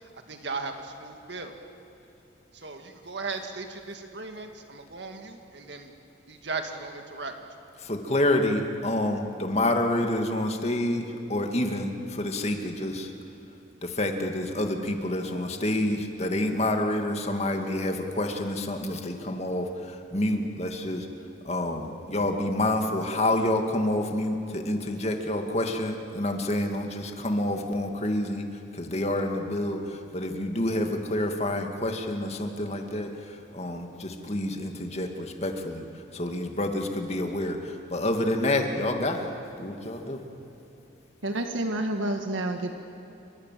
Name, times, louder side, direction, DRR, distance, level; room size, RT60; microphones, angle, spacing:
voice 1, 0.3-1.5 2.5-5.9 6.3-7.3, right 3 dB, 60° right, 5 dB, 2.0 m, -37 dB
voice 2, 7.9-13.1 13.8-19.7 20.1-21.1 21.5-28.5 28.8-29.8 30.1-33.1 33.5-35.9 36.1-37.6 37.9-39.3 39.6-40.2, left 1 dB, 35° left, 4 dB, 2.2 m, -28 dB
voice 3, 41.2-42.7, right 1 dB, 85° right, 5 dB, 1.7 m, -29 dB
29.0 x 24.0 x 7.6 m, 3.0 s
head